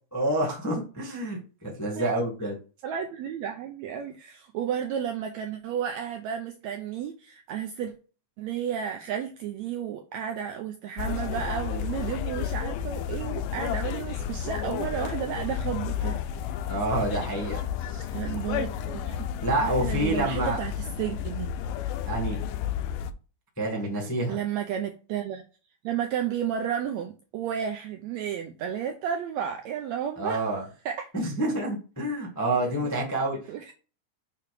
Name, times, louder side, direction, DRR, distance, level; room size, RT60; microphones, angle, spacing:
voice 1, 0.1-2.5 16.7-18.0 18.3-18.4 19.4-20.6 22.1-22.4 23.6-24.4 30.2-30.6 31.1-33.4, right 1 dB, 15° left, -3 dB, 0.6 m, -28 dB
voice 2, 2.8-7.9 8.4-16.2 16.5-16.6 18.1-19.3 19.6-21.5 24.3-25.4 25.8-30.4 30.8-31.1 32.7-33.1 33.5-33.7, right 9 dB, 80° right, 4 dB, 1.6 m, -32 dB
sound 1, 11.0-23.1, left 9 dB, 80° left, 2.1 m, -32 dB
6.8 x 3.4 x 4.8 m, 0.35 s
omnidirectional pair, 3.8 m